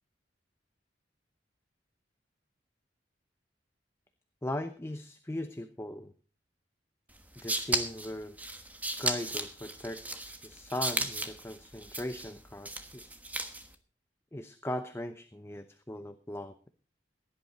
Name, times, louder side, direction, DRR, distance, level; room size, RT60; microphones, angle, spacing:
voice 1, 4.4-6.1 7.4-8.4 9.0-13.1 14.3-16.7, left 1 dB, 15° left, 8 dB, 0.8 m, -39 dB
sound 1, 7.1-13.7, right 2 dB, 10° right, 1.3 m, -35 dB
16.5 x 11.0 x 4.2 m, 0.38 s
head